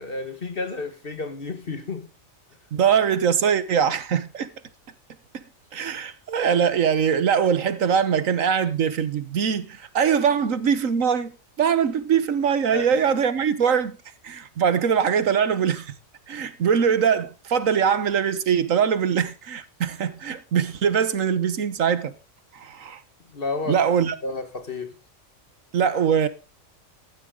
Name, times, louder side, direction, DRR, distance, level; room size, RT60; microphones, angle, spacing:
voice 1, 0.0-2.1 12.7-12.9 23.3-23.8 24.2-25.0, left 3 dB, 45° left, 1.8 m, -31 dB
voice 2, 2.7-4.5 5.3-5.4 5.7-11.3 11.6-14.0 14.2-15.9 16.3-22.1 22.5-23.0 23.7-24.1 25.7-26.3, right 7 dB, 75° right, 1.5 m, -22 dB
15.5 x 11.5 x 3.8 m
omnidirectional pair, 1.4 m